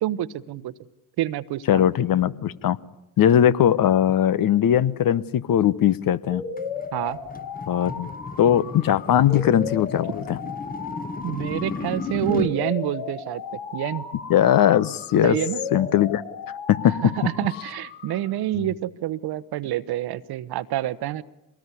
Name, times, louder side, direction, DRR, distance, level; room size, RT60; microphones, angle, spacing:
voice 1, 0.0-0.7 1.2-1.9 6.9-7.2 11.2-13.4 13.7-14.1 15.2-15.9 17.0-21.2, right 13 dB, 55° right, 14 dB, 1.1 m, -27 dB
voice 2, 1.7-2.8 3.2-6.4 7.7-8.1 8.4-10.4 14.3-15.4 15.7-16.2 16.7-17.1, left 10 dB, 45° left, 17 dB, 1.0 m, -19 dB
sound 1, 6.3-18.3, left 5 dB, 70° left, 3.6 m, -35 dB
sound 2, 6.6-12.6, left 3 dB, 20° left, 1.4 m, -34 dB
23.5 x 19.0 x 9.7 m, 0.90 s
hypercardioid pair, 55°, 46 cm